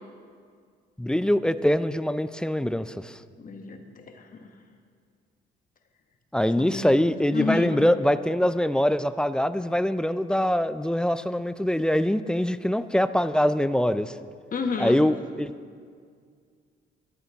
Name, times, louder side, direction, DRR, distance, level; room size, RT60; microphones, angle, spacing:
voice 1, 1.0-3.2 6.3-14.2 14.8-15.5, left 1 dB, 5° left, 13 dB, 0.3 m, -23 dB
voice 2, 3.4-4.6 6.6-6.9 7.3-7.8 14.5-15.0, left 5 dB, 45° left, 5 dB, 1.2 m, -31 dB
12.5 x 11.0 x 3.5 m, 2.1 s
cardioid pair, 90°, 20 cm